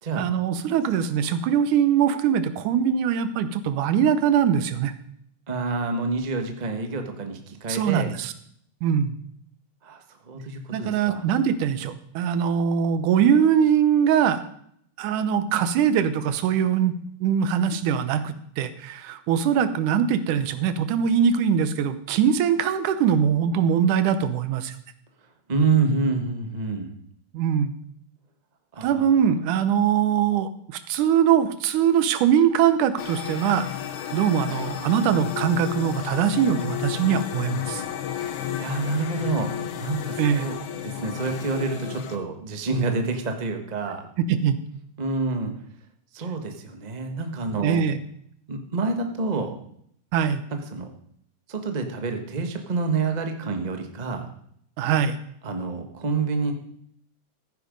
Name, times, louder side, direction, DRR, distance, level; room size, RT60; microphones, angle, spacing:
voice 1, 0.2-4.9 7.7-8.3 8.8-9.2 10.7-14.4 15.0-16.9 17.2-24.8 27.3-27.7 28.8-33.7 34.1-37.8 40.2-40.5 44.2-44.6 47.6-48.0 50.1-50.4 54.8-55.2, right 8 dB, 90° right, 12 dB, 2.5 m, -22 dB
voice 2, 5.5-8.1 9.8-11.2 25.5-26.9 28.7-29.1 38.6-40.5 40.8-44.1 45.0-45.5 46.1-47.8 48.5-49.5 50.7-50.9 51.5-54.3 55.4-56.5, right 4 dB, 55° right, 5 dB, 0.4 m, -27 dB
sound 1, 33.0-42.2, left 11 dB, 80° left, 2.4 m, -32 dB
14.5 x 9.9 x 5.2 m, 0.68 s
omnidirectional pair, 3.5 m